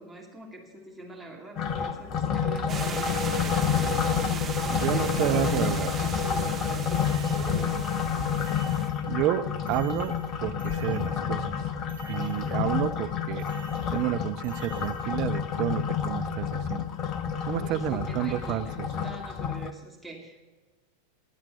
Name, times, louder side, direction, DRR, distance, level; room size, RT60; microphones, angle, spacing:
voice 1, 0.0-7.8 17.6-20.5, right 1 dB, ahead, -2 dB, 2.6 m, -43 dB
sound 1, 1.6-19.7, left 7 dB, 35° left, 0.9 m, -29 dB
sound 2, 2.7-8.9, right 7 dB, 25° right, 1.5 m, -37 dB
voice 2, 4.7-5.9 9.1-10.1 10.4-11.5 12.1-13.4 13.9-16.9 17.5-18.9, right 13 dB, 40° right, 11 dB, 0.6 m, -30 dB
sound 3, 5.0-6.0 6.9-7.9 8.4-9.3 9.7-11.6 11.9-12.9 13.4-15.4, right 7 dB, 75° right, 1.5 m, -51 dB
20.0 x 7.5 x 6.9 m, 1.3 s
figure-of-eight pair, 90°, 0 cm